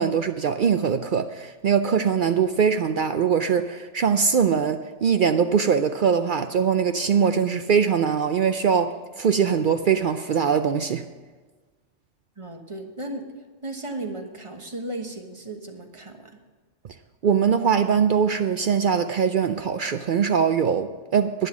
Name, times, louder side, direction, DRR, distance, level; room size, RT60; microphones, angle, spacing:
voice 1, 0.0-11.0 17.2-21.5, right 7 dB, 60° right, 0.5 m, -22 dB
voice 2, 12.4-13.3 13.6-16.4, right 2 dB, 25° right, 1.2 m, -35 dB
11.0 x 10.0 x 6.1 m
omnidirectional pair, 1.2 m